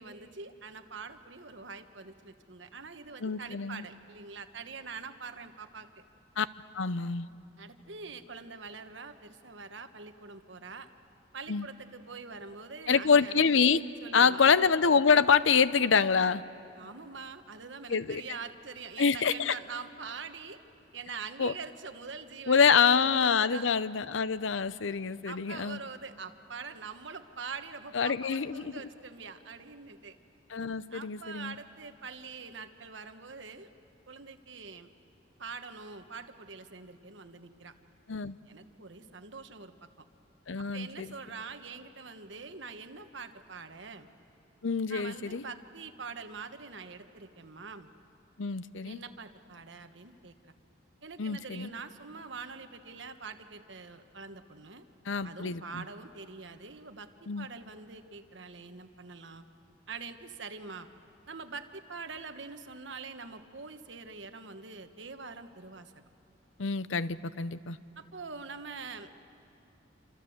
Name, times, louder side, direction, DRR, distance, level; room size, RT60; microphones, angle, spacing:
voice 1, 0.0-5.9 7.6-10.9 11.3-13.4 14.0-14.5 16.8-20.6 20.9-23.7 25.2-30.2 30.9-33.7 34.1-34.9 35.4-37.7 38.5-39.9 40.7-44.1 44.9-47.9 48.8-50.5 51.0-54.8 55.2-59.4 59.9-60.9 61.3-66.0 68.0-69.1, right 4 dB, 70° right, 8 dB, 1.3 m, -44 dB
voice 2, 3.2-3.8 6.4-6.5 6.7-7.3 11.5-11.7 12.9-13.8 14.1-16.4 17.9-18.2 19.0-19.5 21.4-21.5 22.5-25.8 27.9-28.7 30.5-31.5 38.1-38.4 40.5-41.1 44.6-45.4 48.4-49.0 51.2-51.7 55.1-55.8 57.3-57.5 66.6-67.8, left 6 dB, 75° left, 15 dB, 0.7 m, -26 dB
28.0 x 26.0 x 7.9 m, 2.9 s
head